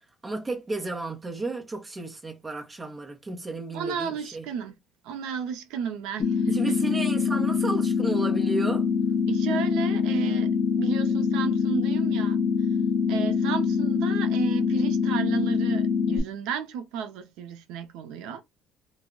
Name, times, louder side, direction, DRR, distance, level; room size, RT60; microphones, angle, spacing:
voice 1, 0.2-4.5 6.5-8.9, right 2 dB, 15° right, 0.6 m, -33 dB
voice 2, 3.7-4.8 5.0-7.0 9.3-12.4 13.1-18.4, right 7 dB, 85° right, 0.4 m, -33 dB
sound 1, 6.2-16.2, left 5 dB, 55° left, 0.7 m, -24 dB
2.2 x 2.0 x 3.6 m
cardioid pair, 170°, 0 cm